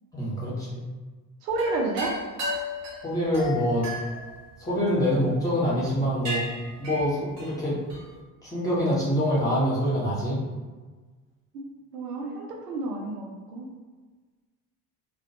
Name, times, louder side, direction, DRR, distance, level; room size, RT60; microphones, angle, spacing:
voice 1, 0.1-0.8 3.0-3.9 4.6-6.4 6.8-7.8 8.4-10.4, equal, 5° left, -9 dB, 0.8 m, -25 dB
voice 2, 1.4-2.2 11.9-13.7, right 2 dB, 70° right, -1 dB, 0.6 m, -30 dB
sound 1, 1.5-5.3 5.8-6.0 6.2-8.2, left 1 dB, 30° right, 0.9 m, -35 dB
2.2 x 2.1 x 2.7 m, 1.4 s
figure-of-eight pair, 60°, 50 cm